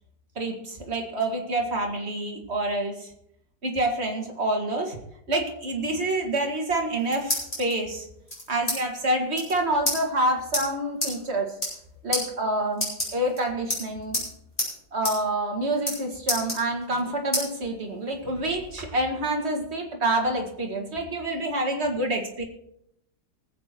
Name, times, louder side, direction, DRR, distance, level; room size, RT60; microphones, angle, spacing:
voice 1, 0.4-3.1 3.6-5.0 5.3-8.1 8.5-11.6 12.0-12.9 13.1-14.2 14.9-22.4, right 1 dB, 35° right, 1 dB, 2.3 m, -27 dB
sound 1, 6.7-7.7 8.3-8.8 9.0-9.1 9.3-9.5 9.8-10.0 10.5-10.6 11.0-11.1 11.5-11.8 12.1-12.2 12.7-13.4 13.7-14.3 14.6-14.7 15.0-15.2 15.4-16.0 16.3-17.0 17.3-17.5 17.9-18.8, left 1 dB, 20° left, 5.6 m, -28 dB
19.5 x 7.9 x 4.5 m, 0.76 s
omnidirectional pair, 1.9 m